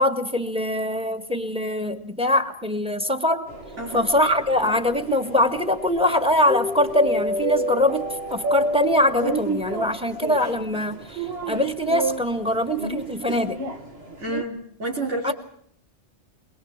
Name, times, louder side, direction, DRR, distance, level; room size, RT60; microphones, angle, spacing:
voice 1, 0.0-3.5 3.9-13.6 15.2-15.3, left 1 dB, 5° right, 8 dB, 1.9 m, -23 dB
sound 1, 3.5-14.4, right 1 dB, 60° right, 2.1 m, -30 dB
voice 2, 3.8-4.1 14.2-15.3, right 2 dB, 85° right, -1 dB, 3.4 m, -29 dB
22.5 x 22.0 x 7.4 m, 0.66 s
omnidirectional pair, 1.2 m